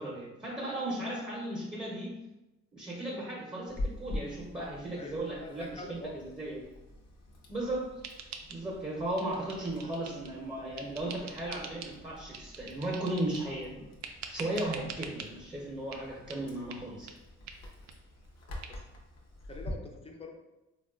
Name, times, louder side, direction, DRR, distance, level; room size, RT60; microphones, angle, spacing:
voice 1, 0.0-2.2 2.7-6.6 7.5-7.9 8.5-13.8 14.3-17.2, right 1 dB, 15° right, -4 dB, 0.7 m, -36 dB
Chewing mastication, 3.7-19.7, left 1 dB, 55° left, 0.7 m, -46 dB
voice 2, 4.9-6.1 9.4-9.9 18.7-18.8 19.5-20.3, left 2 dB, 20° left, 2 dB, 0.5 m, -45 dB
sound 1, 8.0-8.9 9.2-10.4 10.8-12.0 12.3-13.5 14.0-15.3 15.9-16.0 16.3-16.4 16.7-16.8 17.1-17.2 17.5-17.6 17.9-18.0 18.3-18.4 18.6-18.7, right 6 dB, 65° right, 0.4 m, -45 dB
3.5 x 2.3 x 2.3 m, 0.97 s
cardioid pair, 90°, 30 cm